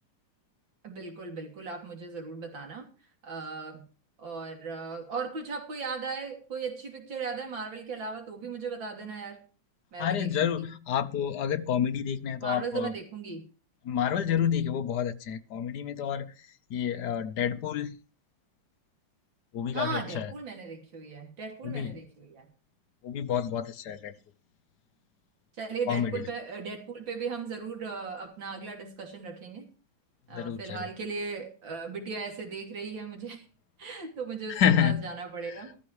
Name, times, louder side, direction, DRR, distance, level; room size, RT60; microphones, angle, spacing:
voice 1, 0.8-2.9 3.2-3.9 4.2-9.4 9.9-10.7 12.4-13.4 19.7-22.5 25.6-29.7 30.3-33.4 33.8-35.7, right 5 dB, 75° right, 3.7 m, -37 dB
voice 2, 10.0-12.9 13.8-16.3 16.7-18.0 19.5-20.3 21.6-22.0 23.0-24.1 25.9-26.3 30.3-30.9 34.5-35.0 35.4-35.6, left 8 dB, 65° left, 1.3 m, -29 dB
14.0 x 14.0 x 3.1 m
omnidirectional pair, 2.1 m